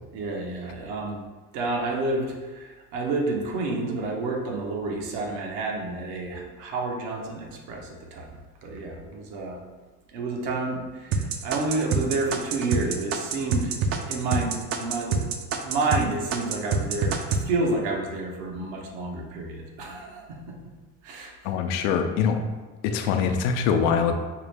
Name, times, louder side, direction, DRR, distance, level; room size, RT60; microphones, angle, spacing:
voice 1, 0.1-1.2 1.5-8.3 8.6-9.6 10.1-13.7 14.1-20.6 21.0-21.5, right 2 dB, 70° right, 1 dB, 0.9 m, -30 dB
sound 1, 11.1-16.0 16.3-17.4, right 5 dB, 40° right, 0.4 m, -26 dB
voice 2, 21.4-22.4 22.8-24.1, left 6 dB, 80° left, 6 dB, 0.5 m, -23 dB
4.7 x 2.0 x 3.4 m, 1.3 s
supercardioid pair, 115°, 37 cm